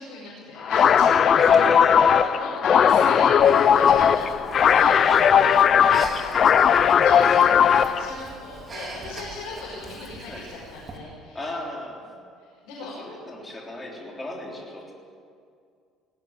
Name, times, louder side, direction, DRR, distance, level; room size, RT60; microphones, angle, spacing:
voice 1, 0.0-4.3 4.7-5.0 7.0-11.5 12.1-13.2, left 3 dB, 90° left, -5 dB, 5.5 m, -39 dB
Dãy Nốt, 0.7-8.1, left 8 dB, 35° left, 0.6 m, -17 dB
voice 2, 1.4-2.3 2.9-3.1 4.7-6.3 6.9-7.1 9.8-10.5 11.3-12.0 13.0-14.9, left 1 dB, 15° left, -1 dB, 3.4 m, -35 dB
Breathing, 3.4-11.0, right 3 dB, 25° right, 2.8 m, -42 dB
19.0 x 16.5 x 8.9 m, 2.3 s
cardioid pair, 160°, 0 cm